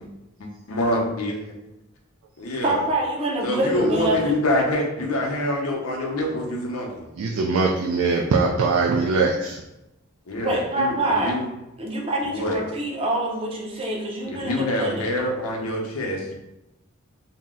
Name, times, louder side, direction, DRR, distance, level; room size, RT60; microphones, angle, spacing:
voice 1, 0.4-1.4 2.4-2.8 3.4-7.0 10.3-11.4 12.2-12.6 14.3-16.3, left 1 dB, 90° left, 0 dB, 0.7 m, -26 dB
voice 2, 2.6-4.3 10.4-11.3 11.8-15.1, right 1 dB, 25° right, -2 dB, 0.5 m, -25 dB
voice 3, 7.2-9.6, right 4 dB, 80° right, 0 dB, 0.3 m, -21 dB
2.7 x 2.0 x 3.5 m, 0.94 s
head